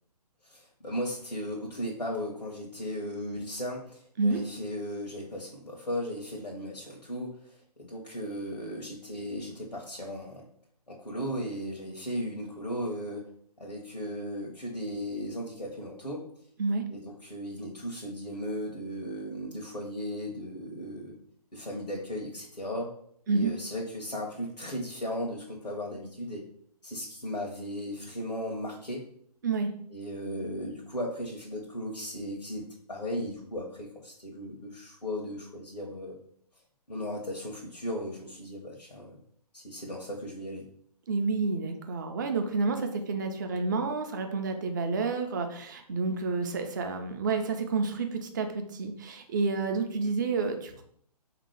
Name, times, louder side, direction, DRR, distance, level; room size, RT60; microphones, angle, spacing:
voice 1, 0.4-10.4 10.9-13.2 13.6-16.3 16.9-21.2 21.5-22.9 23.3-26.4 26.8-29.0 29.9-36.2 36.9-39.2 39.5-40.7, equal, 80° left, -3 dB, 1.0 m, -36 dB
voice 2, 41.1-50.8, right 4 dB, 30° right, 5 dB, 0.5 m, -29 dB
3.6 x 2.9 x 4.8 m, 0.66 s
figure-of-eight pair, 135°, 21 cm